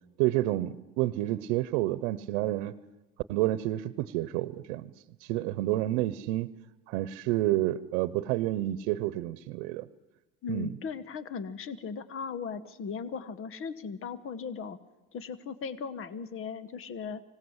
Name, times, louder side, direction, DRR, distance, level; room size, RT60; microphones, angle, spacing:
voice 1, 0.2-2.7 3.3-4.9 5.2-6.5 6.9-9.9 10.5-10.7, right 15 dB, 90° right, 17 dB, 0.9 m, -29 dB
voice 2, 10.4-14.8 15.1-17.2, left 5 dB, 40° left, 16 dB, 1.2 m, -37 dB
25.5 x 17.5 x 8.0 m, 1.0 s
cardioid pair, 125°, 34 cm